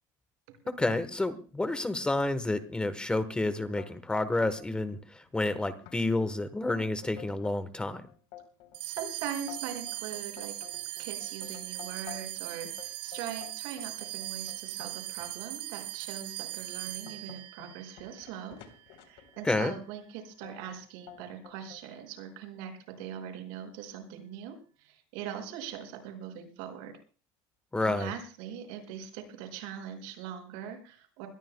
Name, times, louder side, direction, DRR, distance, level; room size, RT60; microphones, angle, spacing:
voice 1, 0.8-8.0 19.4-19.7 27.7-28.1, left 2 dB, 10° left, 11 dB, 1.1 m, -30 dB
sound 1, 3.8-4.7 5.0-5.5 5.9-6.0 6.4-7.6 8.1-12.4 12.8-15.3 15.9-16.1 16.6-19.6 20.4-20.8 21.1-21.8, left 12 dB, 70° left, 3.7 m, -50 dB
sound 2, 8.7-19.4, right 17 dB, 65° right, 3.2 m, -40 dB
voice 2, 8.8-10.5 11.0-18.6 18.9-22.7 23.0-26.9 27.8-31.3, right 8 dB, 80° right, 5 dB, 5.5 m, -41 dB
24.0 x 20.5 x 2.2 m, 0.38 s
cardioid pair, 145°, 10 cm